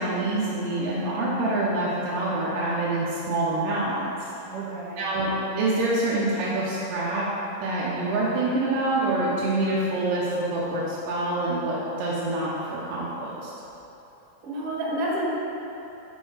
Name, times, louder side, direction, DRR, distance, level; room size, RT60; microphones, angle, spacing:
voice 1, 0.0-4.3 5.0-7.3 7.6-13.5, right 2 dB, 85° right, -6 dB, 2.5 m, -26 dB
voice 2, 4.4-5.1 14.4-15.3, right 1 dB, 70° right, -6 dB, 2.8 m, -30 dB
6.7 x 4.5 x 4.8 m, 3.0 s
omnidirectional pair, 3.9 m